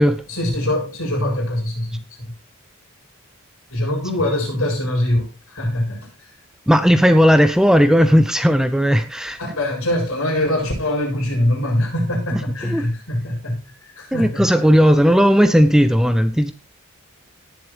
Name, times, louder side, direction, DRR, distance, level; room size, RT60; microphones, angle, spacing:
voice 1, 0.3-2.3 3.7-6.1 9.4-13.6 13.9-14.4, left 1 dB, 70° left, 7.6 m, -23 dB
voice 2, 6.7-9.4 12.6-12.8 14.1-16.5, equal, 5° right, 0.6 m, -15 dB
18.0 x 7.7 x 3.4 m
head